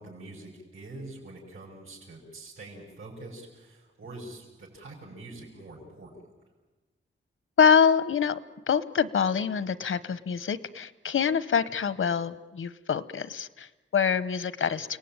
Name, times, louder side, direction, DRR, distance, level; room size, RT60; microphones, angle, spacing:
voice 1, 0.0-6.2, right 2 dB, 90° right, -4 dB, 6.2 m, -45 dB
voice 2, 7.6-8.4 8.7-15.0, left 6 dB, 85° left, 16 dB, 1.0 m, -25 dB
29.5 x 18.5 x 9.0 m, 1.1 s
wide cardioid pair, 180°, 20 cm